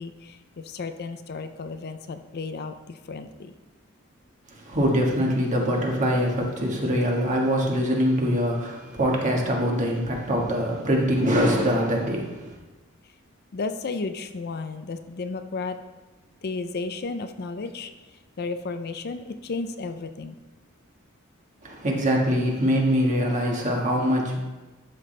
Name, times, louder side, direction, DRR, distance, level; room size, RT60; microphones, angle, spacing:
voice 1, 0.0-3.5 13.5-15.8 16.4-17.9 18.4-20.3, left 3 dB, 50° left, 9 dB, 0.5 m, -33 dB
voice 2, 4.5-12.5 21.6-24.4, equal, 35° right, -1 dB, 1.5 m, -23 dB
12.5 x 5.9 x 3.3 m, 1.2 s
head